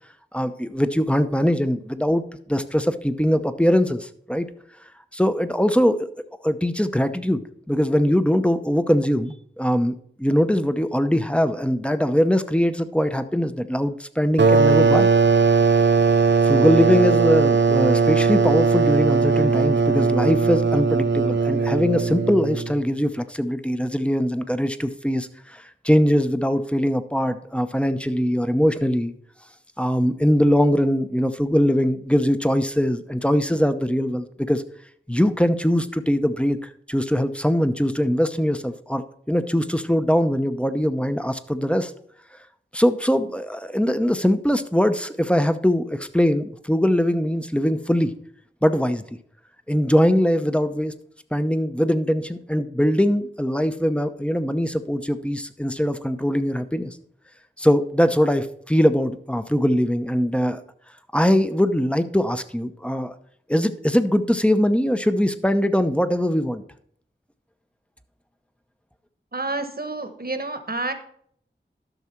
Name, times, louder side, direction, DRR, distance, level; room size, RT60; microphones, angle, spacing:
voice 1, 0.3-2.2 2.5-4.5 5.1-6.1 6.4-7.4 7.7-15.1 16.4-29.1 29.8-34.6 35.1-41.9 42.7-48.1 48.6-49.0 49.7-50.9 51.3-57.0 57.6-60.6 61.1-63.1 63.5-66.6, equal, 5° left, 10 dB, 0.7 m, -21 dB
sound 1, 14.4-22.8, right 5 dB, 70° right, 0.5 m, -19 dB
voice 2, 69.3-70.9, right 2 dB, 50° right, 8 dB, 1.1 m, -29 dB
12.0 x 6.3 x 4.5 m, 0.64 s
wide cardioid pair, 55°, 20 cm